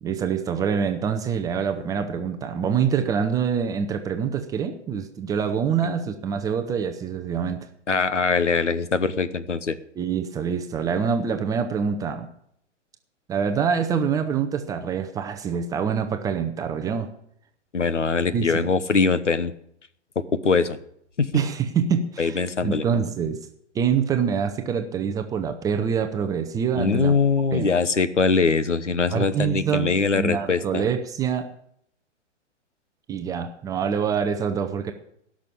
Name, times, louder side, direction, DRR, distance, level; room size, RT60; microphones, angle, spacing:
voice 1, 0.0-7.7 10.0-12.3 13.3-17.1 18.3-18.7 21.3-22.4 22.6-23.4 23.7-27.1 27.5-27.7 29.1-31.5 33.1-34.9, right 7 dB, 10° right, 6 dB, 0.6 m, -25 dB
voice 2, 7.9-9.8 17.7-19.5 20.4-20.8 21.2-21.3 22.2-22.8 26.8-30.8, left 4 dB, 75° left, 14 dB, 1.1 m, -22 dB
17.0 x 6.3 x 8.6 m, 0.70 s
figure-of-eight pair, 110°, 36 cm